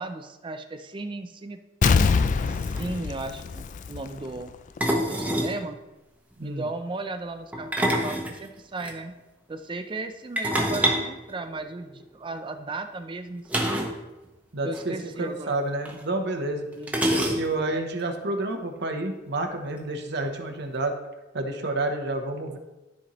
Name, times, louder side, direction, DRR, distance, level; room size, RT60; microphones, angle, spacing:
voice 1, 0.0-1.6 2.5-4.5 4.9-5.8 6.4-9.1 9.5-13.9 14.6-15.5 16.8-17.2, right 2 dB, 25° right, 8 dB, 0.4 m, -36 dB
Explosion, 1.8-4.4 4.8-4.9, left 5 dB, 40° left, 0.3 m, -23 dB
sound 1, 2.5-2.6 2.8-3.0 4.8-5.6 7.5-8.9 10.4-12.0 13.5-14.0 14.3-14.4 14.7-14.8 15.8-15.9 16.9-17.7, right 1 dB, 10° right, 0.8 m, -26 dB
voice 2, 14.5-16.7 17.1-21.0 21.3-22.6, right 2 dB, 60° right, 4 dB, 0.9 m, -29 dB
13.0 x 4.3 x 3.0 m, 1.1 s
head